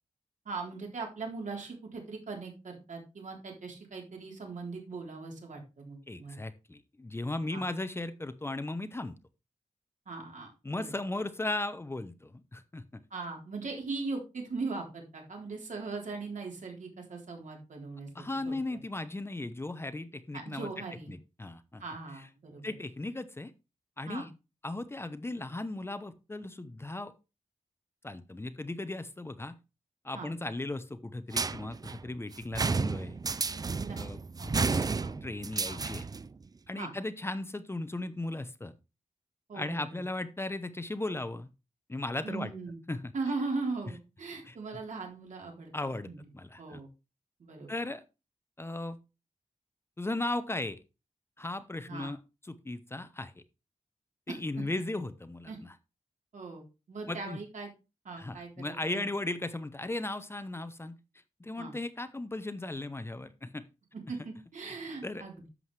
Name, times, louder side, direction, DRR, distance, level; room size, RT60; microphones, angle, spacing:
voice 1, 0.5-6.4 7.5-7.6 10.1-10.5 10.8-10.9 13.1-18.8 20.3-21.1 21.8-22.6 24.1-24.3 30.1-30.3 33.8-34.0 34.4-34.5 35.0-35.2 35.6-35.8 36.8-36.9 39.5-40.0 42.2-42.8 43.1-45.7 46.0-46.2 46.6-46.9 47.4-47.7 51.9-52.1 54.3-54.4 55.5-55.6 56.3-57.7 58.0-59.0 61.6-61.7 64.1-65.5, right 3 dB, 85° right, 1 dB, 3.7 m, -39 dB
voice 2, 6.1-9.1 10.6-13.0 18.1-20.7 21.1-21.8 22.6-23.5 24.0-24.3 24.6-27.1 28.0-29.6 30.0-33.2 34.0-34.9 35.2-36.1 36.7-38.7 39.5-41.5 41.9-42.5 42.9-43.1 44.5-44.6 45.7-46.1 46.3-46.8 47.7-48.0 48.6-49.0 50.0-50.8 51.4-52.2 52.5-53.3 54.3-55.7 57.1-57.4 58.2-61.0 61.4-63.6 64.2-64.3 65.0-65.2, left 2 dB, 20° left, 12 dB, 0.7 m, -36 dB
sound 1, 31.3-36.3, right 4 dB, 30° right, 0.4 m, -32 dB
11.0 x 7.7 x 3.3 m, 0.28 s
wide cardioid pair, 145°, 13 cm